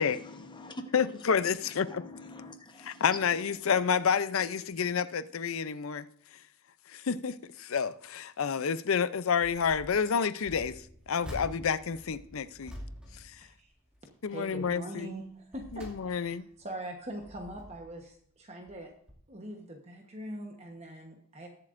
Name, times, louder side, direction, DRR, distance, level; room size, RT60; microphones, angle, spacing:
voice 1, 0.0-0.9 1.9-3.0 3.6-3.7, left 1 dB, 20° left, 1.0 m, -45 dB
voice 2, 0.9-2.0 2.8-6.1 6.9-12.7 13.1-13.4 14.2-15.1 15.7-16.5, left 6 dB, 70° left, 0.5 m, -29 dB
sound 1, 9.4-10.0 10.4-14.1 14.4-14.8 15.3-16.5 17.0-18.0 18.7-18.8 19.1-19.2, equal, 5° right, 2.3 m, -47 dB
voice 3, 13.4-13.7 14.3-18.9 19.3-21.5, right 1 dB, 30° right, 1.1 m, -43 dB
21.0 x 7.5 x 2.6 m
head